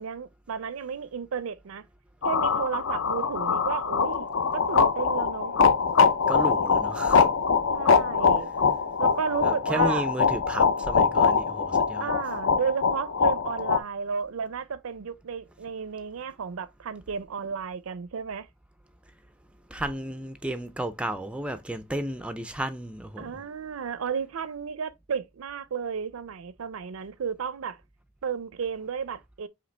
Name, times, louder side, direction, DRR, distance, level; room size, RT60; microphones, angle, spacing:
voice 1, 0.0-1.8 2.2-4.3 4.5-5.5 7.7-8.5 9.0-10.1 12.0-18.5 23.2-27.8 28.2-29.5, right 6 dB, 85° right, 0.5 m, -33 dB
sound 1, 2.2-13.8, left 5 dB, 70° left, 0.5 m, -23 dB
voice 2, 6.3-7.3 9.4-12.1 19.7-23.4, right 1 dB, 5° right, 0.3 m, -33 dB
5.1 x 2.9 x 3.2 m
head